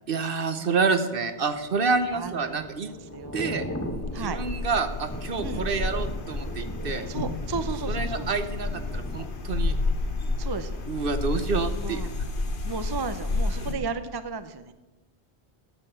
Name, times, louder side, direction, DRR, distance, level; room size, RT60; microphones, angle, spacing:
voice 1, 0.1-2.9 3.3-3.6 4.2-7.1 7.9-9.7 10.9-12.1, right 4 dB, 55° right, 9 dB, 1.1 m, -28 dB
Thunder / Rain, 1.5-11.4 11.7-12.0, equal, 15° left, 1.0 m, -39 dB
voice 2, 2.1-4.4 5.4-5.7 7.1-8.4 10.4-10.8 11.3-12.1 12.6-14.7, right 4 dB, 30° right, 11 dB, 0.5 m, -35 dB
sound 1, 3.8-13.7, left 3 dB, 55° left, 1.1 m, -30 dB
9.7 x 8.7 x 9.1 m, 1.1 s
omnidirectional pair, 1.1 m